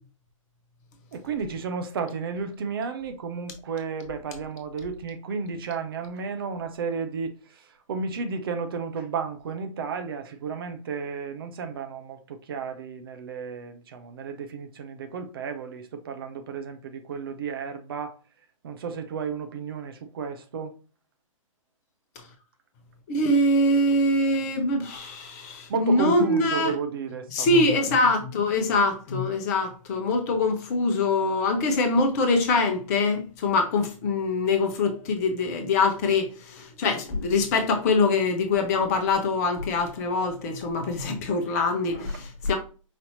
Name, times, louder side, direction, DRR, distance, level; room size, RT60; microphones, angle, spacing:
voice 1, 1.1-7.3 7.9-18.2 18.6-20.7 25.7-27.5 27.8-27.9 28.6-28.7, right 5 dB, 40° right, 0.6 m, -33 dB
voice 2, 23.1-26.7 27.3-42.6, left 2 dB, 30° left, 0.8 m, -24 dB
5.1 x 2.7 x 2.7 m
figure-of-eight pair, 125°, 18 cm